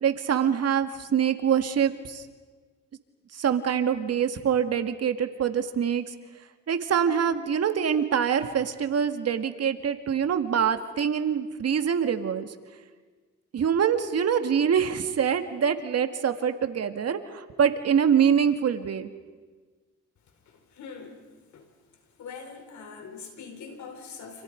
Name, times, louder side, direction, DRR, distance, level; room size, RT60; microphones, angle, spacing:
voice 1, 0.0-2.2 3.4-6.0 6.7-12.5 13.5-19.1, right 8 dB, 55° right, 8 dB, 2.0 m, -25 dB
voice 2, 20.7-21.2 21.5-21.7 22.2-24.4, left 5 dB, 70° left, 5 dB, 4.9 m, -42 dB
29.5 x 28.0 x 5.2 m, 1.4 s
cardioid pair, 90°, 30 cm